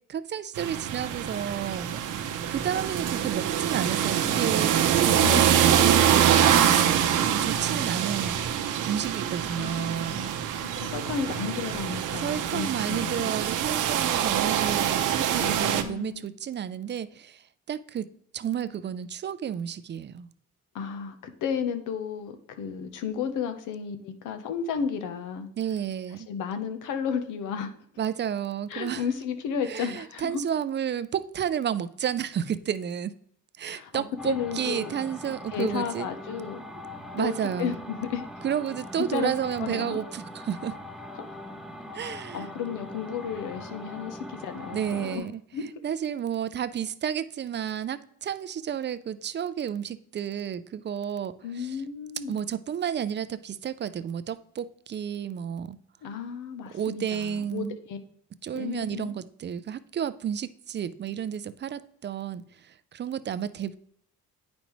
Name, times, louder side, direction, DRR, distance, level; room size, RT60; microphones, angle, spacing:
voice 1, 0.0-6.8 7.3-8.4 8.8-10.3 12.2-20.3 25.6-26.3 28.0-29.1 29.6-33.1 33.6-36.1 37.1-37.8 38.4-40.8 41.9-42.5 44.7-45.3 45.8-51.8 52.3-55.8 56.7-57.8 58.4-63.8, right 9 dB, 35° right, 0.4 m, -31 dB
sound 1, 0.5-15.8, right 9 dB, 85° right, 0.7 m, -25 dB
voice 2, 5.7-6.2 9.6-10.3 10.6-13.3 15.4-16.3 20.7-25.5 26.3-27.7 28.7-30.4 33.7-34.9 35.5-36.8 37.2-38.2 39.1-39.3 39.6-40.0 42.0-45.3 45.5-45.6 51.4-52.4 56.0-58.0 58.5-59.2, left 7 dB, 90° left, 0.8 m, -33 dB
sound 2, 34.2-45.2, left 1 dB, ahead, 0.7 m, -41 dB
8.9 x 5.2 x 3.1 m
cardioid pair, 90°, 30 cm